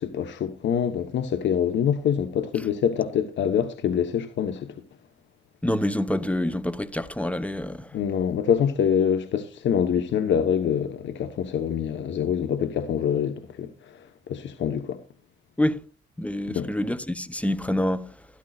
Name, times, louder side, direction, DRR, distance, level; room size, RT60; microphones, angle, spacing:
voice 1, 0.0-4.8 7.9-15.0 16.5-16.7, left 8 dB, 65° left, 1.1 m, -25 dB
voice 2, 5.6-8.0 15.6-15.8 16.2-18.3, left 1 dB, 5° left, 1.0 m, -27 dB
13.0 x 12.0 x 2.4 m
cardioid pair, 90°, 20 cm